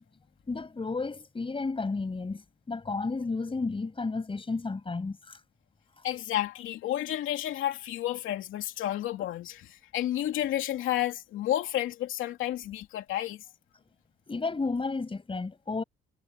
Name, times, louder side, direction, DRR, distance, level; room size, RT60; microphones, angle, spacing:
voice 1, 0.5-5.4 14.3-15.8, left 3 dB, 25° left, 6.9 m, -32 dB
voice 2, 6.0-13.4, left 12 dB, 85° left, 2.8 m, -31 dB
cardioid pair, 90°, 20 cm